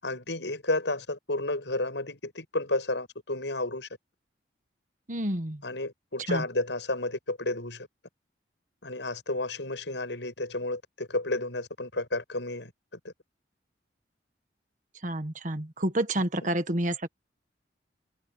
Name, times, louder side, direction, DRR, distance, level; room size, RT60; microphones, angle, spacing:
voice 1, 0.0-3.9 5.6-7.9 8.8-12.7 13.0-13.1 16.4-16.5, left 2 dB, 75° left, 7.4 m, -31 dB
voice 2, 5.1-5.6 6.3-6.4 15.0-17.1, right 1 dB, 45° right, 1.6 m, -29 dB
head